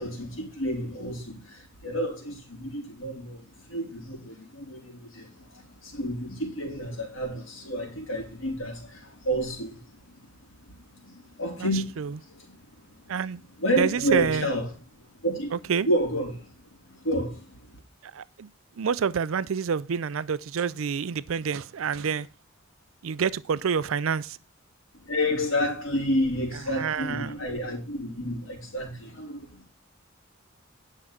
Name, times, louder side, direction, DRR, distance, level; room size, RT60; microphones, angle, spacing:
voice 1, 0.0-10.3 10.7-13.3 13.6-14.8 15.2-16.5 16.9-17.7 24.9-29.6, equal, 70° left, 4.2 m, -30 dB
voice 2, 13.8-14.5 15.7-15.9 18.2-18.5 18.8-22.3 23.0-24.4 26.8-27.3, right 6 dB, 75° right, 0.5 m, -27 dB
10.5 x 6.1 x 5.8 m
head